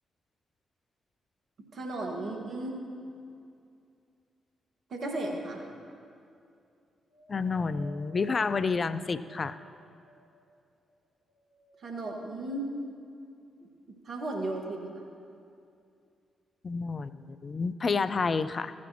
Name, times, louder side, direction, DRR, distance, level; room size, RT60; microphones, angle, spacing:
voice 1, 1.7-2.8 4.9-5.6 11.8-12.7 14.0-15.1, right 2 dB, 55° right, 1 dB, 1.6 m, -35 dB
Wind, 7.1-10.6 11.2-12.2 13.0-13.1, right 2 dB, 70° left, 1.8 m, -54 dB
voice 2, 7.3-9.6 16.6-18.7, left 4 dB, 45° left, 14 dB, 0.4 m, -29 dB
15.0 x 9.4 x 2.9 m, 2.4 s
hypercardioid pair, 40°, 0 cm